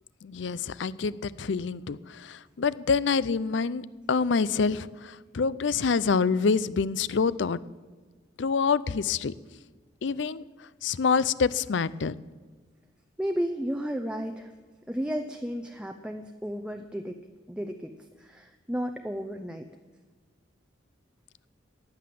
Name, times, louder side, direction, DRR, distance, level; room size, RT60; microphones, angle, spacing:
voice 1, 0.2-7.6 8.4-9.3 10.0-12.1, left 5 dB, 70° left, 18 dB, 0.5 m, -27 dB
voice 2, 13.2-14.5 14.9-17.2 17.5-17.9 18.2-19.7, equal, 5° right, 5 dB, 0.6 m, -33 dB
15.0 x 10.5 x 7.6 m, 1.4 s
head